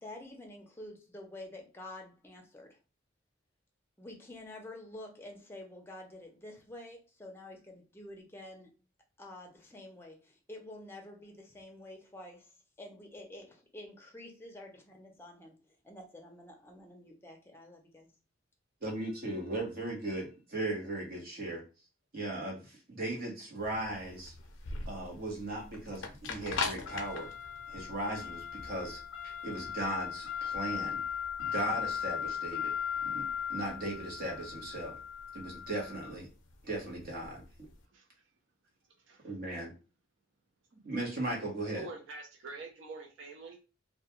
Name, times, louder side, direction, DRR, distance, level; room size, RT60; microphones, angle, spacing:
voice 1, 0.0-2.8 4.0-8.7 9.2-15.5 15.8-18.1, left 1 dB, 10° left, 1 dB, 0.5 m, -49 dB
voice 2, 18.8-21.6 22.1-24.3 24.9-27.3 27.7-29.0 29.4-31.0 31.4-32.7 33.0-35.0 35.3-36.3 36.6-37.4 39.2-39.7 40.8-41.9, right 1 dB, 50° right, 0 dB, 0.9 m, -37 dB
sound 1, 23.6-37.7, left 7 dB, 80° left, 0.5 m, -38 dB
voice 3, 41.7-43.6, right 3 dB, 70° right, 3 dB, 0.5 m, -46 dB
2.2 x 2.2 x 2.8 m, 0.32 s
head